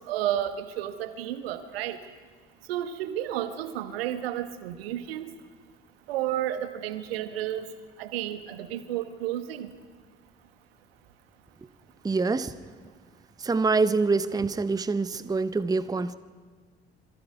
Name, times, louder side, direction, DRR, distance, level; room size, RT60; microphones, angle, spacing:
voice 1, 0.1-2.0 2.7-5.3 6.1-7.6 8.0-9.7, right 11 dB, 70° right, 1.3 m, -31 dB
voice 2, 12.0-12.5 13.4-16.1, right 4 dB, 10° right, 0.7 m, -25 dB
27.0 x 22.5 x 4.8 m
figure-of-eight pair, 50°, 31 cm